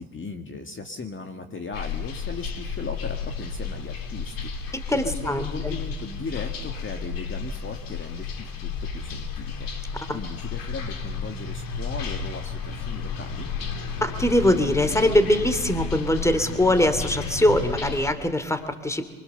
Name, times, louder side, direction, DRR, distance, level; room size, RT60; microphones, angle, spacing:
voice 1, 0.0-9.7 10.1-13.5, left 4 dB, 25° left, 5 dB, 2.1 m, -37 dB
sound 1, 1.7-18.1, left 5 dB, 50° left, 3.2 m, -32 dB
voice 2, 4.9-5.8 10.1-10.2 14.0-19.0, left 1 dB, 5° left, 10 dB, 2.5 m, -22 dB
24.5 x 23.5 x 6.9 m, 1.4 s
hypercardioid pair, 75°, 44 cm